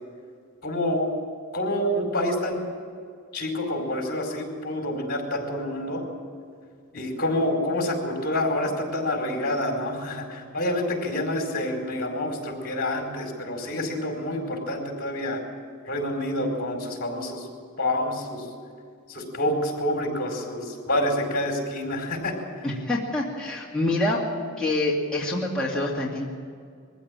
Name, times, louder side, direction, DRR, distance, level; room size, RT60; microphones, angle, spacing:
voice 1, 0.6-1.1 1.5-2.6 3.3-6.0 6.9-15.4 15.9-17.5 17.8-18.4 19.1-22.3, left 1 dB, 45° left, 2 dB, 4.7 m, -27 dB
voice 2, 22.6-24.2 24.6-26.3, left 2 dB, 5° left, -5 dB, 2.4 m, -26 dB
22.5 x 15.5 x 8.9 m, 2.2 s
head